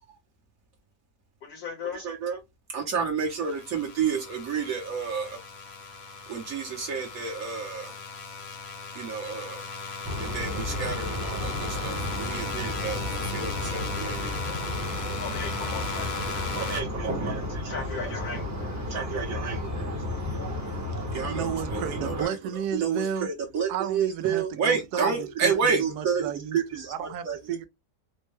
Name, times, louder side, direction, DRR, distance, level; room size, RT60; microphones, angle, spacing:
voice 1, 1.4-2.0 15.2-16.8 17.7-19.1, left 5 dB, 75° left, 1.8 m, -37 dB
voice 2, 1.9-2.4 2.7-5.4 6.3-7.9 9.0-9.7 10.3-13.0 13.3-14.3 16.5-17.8 18.9-20.2 21.1-22.4 22.7-26.9 27.2-27.4, right 6 dB, 65° right, 1.2 m, -30 dB
sound 1, 3.2-16.8, left 4 dB, 50° left, 1.0 m, -37 dB
sound 2, 10.0-22.2, left 1 dB, 15° right, 0.6 m, -33 dB
voice 3, 21.3-23.3 23.7-27.6, right 8 dB, 85° right, 1.1 m, -33 dB
4.3 x 2.1 x 3.1 m
omnidirectional pair, 1.6 m